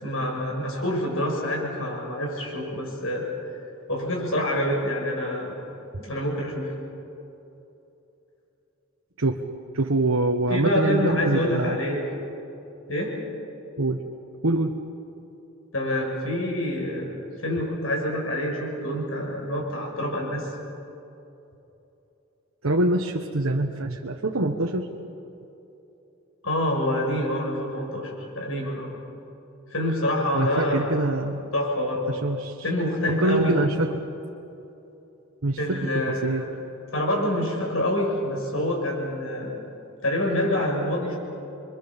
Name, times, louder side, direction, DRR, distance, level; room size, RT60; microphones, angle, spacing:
voice 1, 0.0-3.3 3.9-5.6 6.0-6.7 10.5-12.1 12.9-13.2 15.7-17.1 17.4-20.5 26.4-29.0 29.7-31.0 31.5-32.1 32.6-33.6 35.6-36.5 36.9-39.6 40.0-41.2, left 1 dB, 75° left, 0 dB, 6.4 m, -26 dB
voice 2, 9.7-11.8 13.8-14.0 14.4-14.7 22.6-24.9 30.3-31.4 32.1-32.6 33.2-33.9 35.4-36.4, right 2 dB, 75° right, 1 dB, 1.3 m, -24 dB
28.0 x 23.5 x 7.3 m, 3.0 s
head